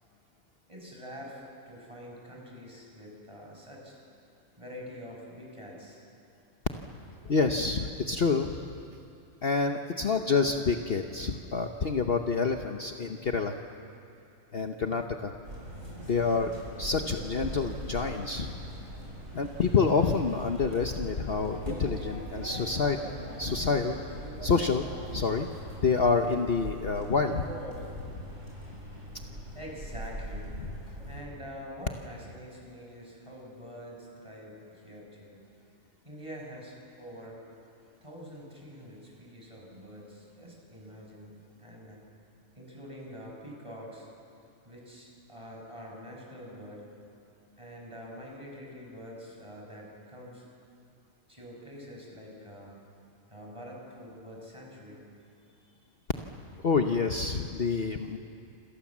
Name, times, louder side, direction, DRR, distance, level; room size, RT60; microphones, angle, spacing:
voice 1, 0.7-4.0 4.6-6.0 29.5-30.7 31.1-35.4 36.0-37.4 38.0-42.0 42.5-44.1 44.6-46.8 47.6-50.4 51.3-52.8 53.3-55.0 55.6-55.9, equal, 20° right, -2 dB, 6.6 m, -46 dB
voice 2, 7.2-8.7 9.4-13.6 14.5-15.3 16.1-18.5 19.3-23.0 23.4-24.0 24.4-24.8 25.1-25.5 25.8-27.4 28.1-28.3 56.6-58.2, left 4 dB, 50° left, 4 dB, 1.2 m, -27 dB
sound 1, 15.4-31.2, equal, 60° right, 6.9 m, -41 dB
28.0 x 27.5 x 7.4 m, 2.7 s
omnidirectional pair, 1.4 m